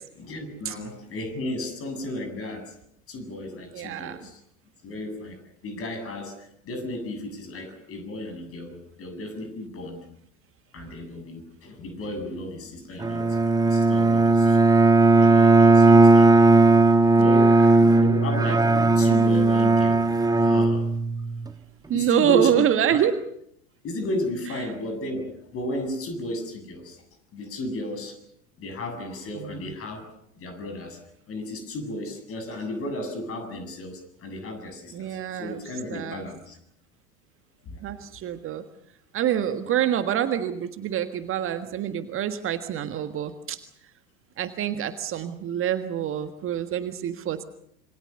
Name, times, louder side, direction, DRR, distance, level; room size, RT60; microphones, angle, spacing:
voice 1, 0.2-2.7 3.1-4.4 4.8-10.0 10.7-13.4 13.6-14.6 15.0-16.3 17.1-17.5 17.9-20.0 20.4-20.9 21.9-23.1 23.8-27.0 27.3-28.2 28.6-30.0 30.3-31.0 31.3-36.6 37.7-37.8, left 1 dB, 35° left, 8 dB, 7.6 m, -34 dB
voice 2, 3.7-4.2 17.2-17.6 21.9-23.1 24.6-24.7 29.4-29.6 34.9-35.6 35.9-36.3 37.8-38.6 39.1-43.6 44.4-47.4, right 10 dB, 30° right, 9 dB, 1.6 m, -26 dB
Bowed string instrument, 13.0-21.5, right 3 dB, 10° right, 1.7 m, -17 dB
27.0 x 24.5 x 6.9 m, 0.71 s
figure-of-eight pair, 80°, 41 cm